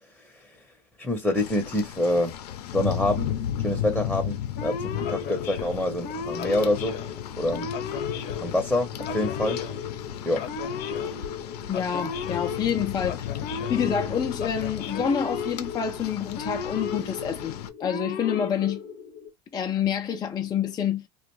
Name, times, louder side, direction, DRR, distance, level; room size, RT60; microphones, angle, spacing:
voice 1, 0.2-0.6 1.0-2.4 2.7-3.3 3.6-7.0 7.4-7.7 8.4-9.6 10.3-10.4, left 1 dB, ahead, 0.7 m, -26 dB
Rain, 1.3-17.7, left 10 dB, 85° left, 0.5 m, -35 dB
Male speech man speaking / Siren, 4.6-19.3, left 5 dB, 50° left, 0.7 m, -34 dB
voice 2, 11.7-13.3 13.7-18.8 19.5-21.1, left 8 dB, 20° left, 0.3 m, -27 dB
2.4 x 2.2 x 3.0 m
hypercardioid pair, 100°, 20 cm